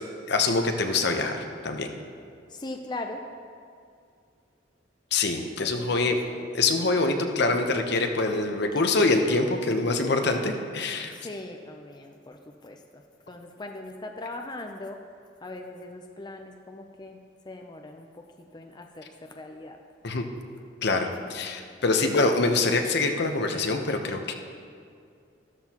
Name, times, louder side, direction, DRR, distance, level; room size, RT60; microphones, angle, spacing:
voice 1, 0.3-1.9 5.1-6.2 6.5-11.1 20.0-20.2 20.8-24.3, left 3 dB, 65° left, 5 dB, 0.9 m, -25 dB
voice 2, 2.5-3.2 5.6-5.7 6.0-6.2 11.1-12.8 13.3-15.0 15.4-17.2 17.5-18.2 18.5-19.8, left 2 dB, 25° left, 3 dB, 0.5 m, -40 dB
13.0 x 13.0 x 3.0 m, 2.3 s
head